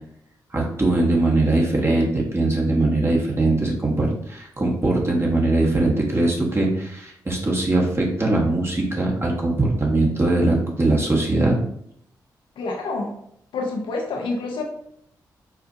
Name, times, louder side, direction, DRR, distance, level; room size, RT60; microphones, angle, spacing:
voice 1, 0.5-11.6, right 2 dB, 30° right, -2 dB, 1.3 m, -21 dB
voice 2, 12.6-13.2 13.5-14.6, left 3 dB, 80° left, 1 dB, 0.7 m, -27 dB
4.7 x 2.2 x 2.7 m, 0.70 s
supercardioid pair, 45°, 8 cm